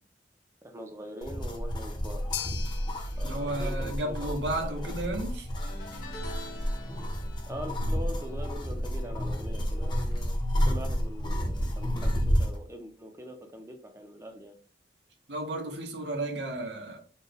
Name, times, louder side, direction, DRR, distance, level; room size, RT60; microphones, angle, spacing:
voice 1, 0.6-2.3 3.2-5.1 7.5-10.3 10.6-14.6, equal, 15° right, 0.5 m, -43 dB
sound 1, 1.2-12.6, equal, 25° left, 0.6 m, -30 dB
sound 2, 2.3-10.7, left 10 dB, 85° left, 0.5 m, -46 dB
voice 2, 3.2-5.5 15.3-17.0, right 1 dB, 80° right, 0.9 m, -33 dB
sound 3, 5.6-11.0 11.2-11.6 12.8-12.9, left 1 dB, 55° left, 1.2 m, -48 dB
4.2 x 2.2 x 3.3 m
head